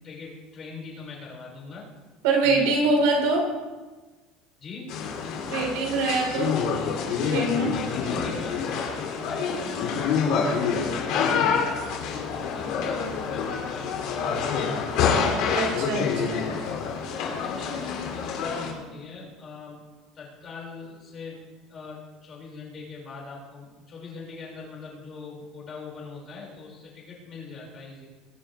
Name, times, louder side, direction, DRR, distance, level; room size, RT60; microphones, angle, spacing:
voice 1, 0.0-1.8 2.4-3.0 4.6-4.9 7.6-10.5 10.9-15.2 17.1-19.8 20.1-28.1, left 4 dB, 30° left, -4 dB, 5.5 m, -41 dB
voice 2, 2.2-3.5 5.4-6.6 7.2-7.7 15.5-16.5, right 3 dB, 85° right, -1 dB, 4.2 m, -24 dB
sound 1, 4.9-18.7, left 6 dB, 60° left, 2.6 m, -27 dB
21.0 x 11.0 x 3.4 m, 1.3 s
cardioid pair, 150°, 0 cm